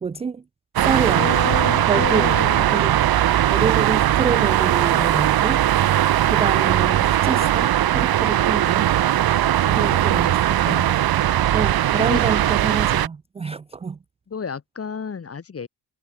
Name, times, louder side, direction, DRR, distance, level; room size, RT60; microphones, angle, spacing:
voice 1, 0.0-0.4 0.8-1.3 1.8-2.3 2.7-3.0 3.5-5.6 6.3-8.9 9.8-10.8 11.5-14.0, right 5 dB, 15° right, 0.3 m, -26 dB
sound 1, 0.8-13.1, right 12 dB, 50° right, 0.9 m, -19 dB
voice 2, 1.1-2.9 4.3-4.5 9.6-10.3 10.6-11.0 12.0-12.2 14.3-15.7, left 6 dB, 30° left, 1.5 m, -31 dB
supercardioid pair, 75°, 46 cm